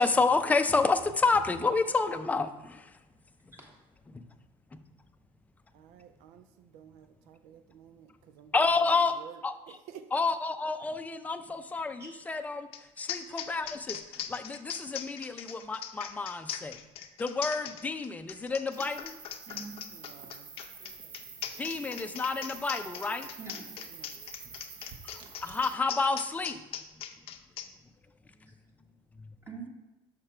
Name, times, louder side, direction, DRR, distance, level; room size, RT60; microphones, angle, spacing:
voice 1, 0.0-3.0 4.1-4.2 8.5-9.2 9.4-9.8 10.1-12.7 13.0-16.8 17.2-19.2 21.6-23.3 25.0-26.6 29.2-29.3, left 4 dB, 15° left, 0.5 m, -29 dB
voice 2, 5.7-8.5 9.2-9.4 9.7-10.1 19.9-20.6 23.9-24.2, right 9 dB, 80° right, 0.5 m, -52 dB
sound 1, 12.7-12.8 13.1-27.7, left 10 dB, 55° left, 0.6 m, -40 dB
sound 2, 18.7-25.7, right 5 dB, 45° right, 1.0 m, -48 dB
voice 3, 19.5-19.9 23.4-23.7 25.5-25.6 29.5-29.7, right 4 dB, 20° right, 1.6 m, -45 dB
6.4 x 5.8 x 4.4 m
cardioid pair, 120°, 11 cm